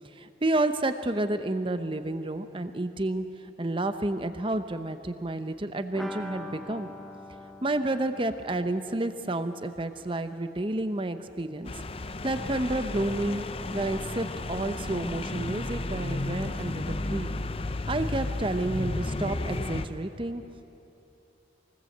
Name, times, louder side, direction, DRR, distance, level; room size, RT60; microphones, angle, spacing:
voice 1, 0.1-6.9 7.6-11.7 12.0-13.5 13.7-17.4 17.9-20.4, right 2 dB, 30° right, 9 dB, 0.9 m, -30 dB
sound 1, 5.9-11.5 11.8-11.9 12.2-12.3, left 1 dB, ahead, 0.9 m, -45 dB
sound 2, 11.6-19.9, left 2 dB, 30° left, 0.7 m, -33 dB
23.5 x 19.0 x 8.0 m, 2.9 s
head